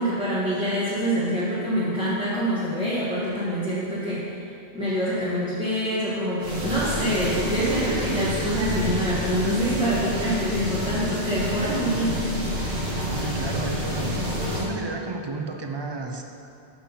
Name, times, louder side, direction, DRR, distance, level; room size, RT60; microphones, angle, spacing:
voice 1, 0.0-4.3 4.7-12.2, equal, 5° right, -11 dB, 1.2 m, -25 dB
sound 1, 6.4-14.7, equal, 80° right, 1.6 m, -29 dB
voice 2, 13.0-14.2 14.5-16.2, right 3 dB, 40° right, 3 dB, 0.4 m, -32 dB
6.2 x 6.1 x 5.5 m, 2.7 s
omnidirectional pair, 1.1 m